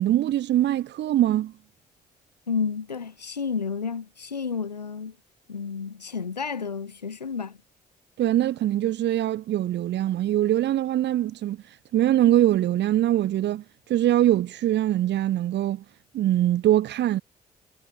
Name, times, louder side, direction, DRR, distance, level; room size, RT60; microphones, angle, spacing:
voice 1, 0.0-1.5 8.2-15.8 16.1-17.2, right 13 dB, 60° right, 2.9 m, -23 dB
voice 2, 2.5-5.2 5.5-7.6, left 6 dB, 90° left, 2.2 m, -31 dB
figure-of-eight pair, 45°, 21 cm